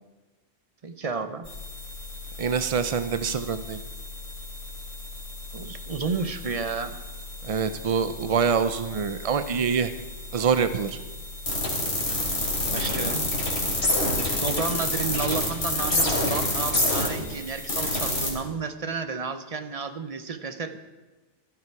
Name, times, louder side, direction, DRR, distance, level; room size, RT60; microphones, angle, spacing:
voice 1, 0.8-1.5 5.5-7.0 12.0-12.1 12.7-13.3 14.4-20.8, right 5 dB, 35° right, 9 dB, 0.8 m, -32 dB
sound 1, 1.4-18.3, left 2 dB, 55° left, 3.2 m, -29 dB
voice 2, 2.4-3.8 7.4-9.9 10.3-11.0, right 6 dB, 65° right, 11 dB, 0.3 m, -25 dB
15.5 x 13.0 x 4.7 m, 1.2 s
omnidirectional pair, 1.3 m